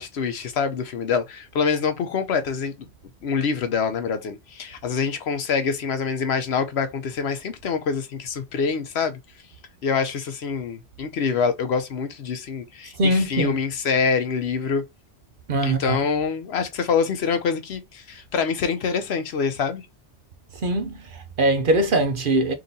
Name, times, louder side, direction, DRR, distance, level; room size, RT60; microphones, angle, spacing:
voice 1, 0.0-2.7 3.2-9.2 9.8-14.8 15.6-19.8, left 6 dB, 70° left, 0.9 m, -25 dB
voice 2, 13.0-13.6 15.5-16.0 20.6-22.5, right 1 dB, 55° right, 0.9 m, -22 dB
3.8 x 2.6 x 4.0 m
omnidirectional pair, 1.2 m